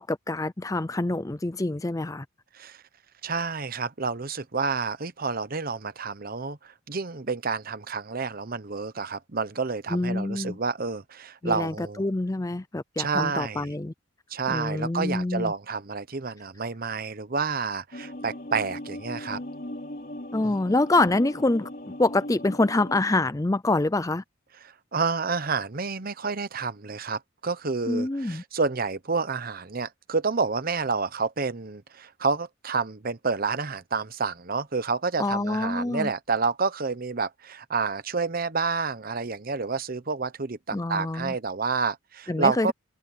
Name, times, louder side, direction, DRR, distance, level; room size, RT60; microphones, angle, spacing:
voice 1, 0.0-2.2 9.9-10.6 11.4-13.9 14.5-15.5 20.3-21.7 22.0-24.2 27.9-28.4 35.2-36.1 40.7-41.4 42.3-42.7, left 2 dB, 15° left, 0.5 m, -26 dB
voice 2, 3.2-12.0 13.0-13.7 14.3-19.4 20.4-20.5 24.9-42.7, right 4 dB, 45° right, 1.0 m, -29 dB
sound 1, 17.9-23.0, left 1 dB, 50° left, 2.7 m, -38 dB
head